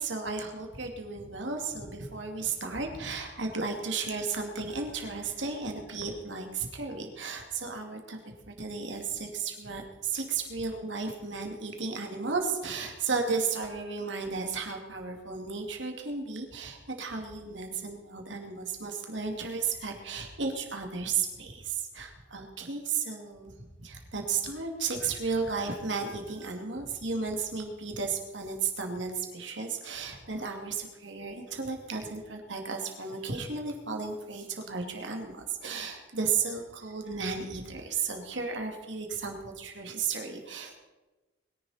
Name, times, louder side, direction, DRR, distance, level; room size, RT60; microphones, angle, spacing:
voice 1, 0.0-8.2 8.6-23.5 23.8-40.8, right 4 dB, 80° right, 3 dB, 2.4 m, -34 dB
22.5 x 10.5 x 4.3 m, 1.2 s
head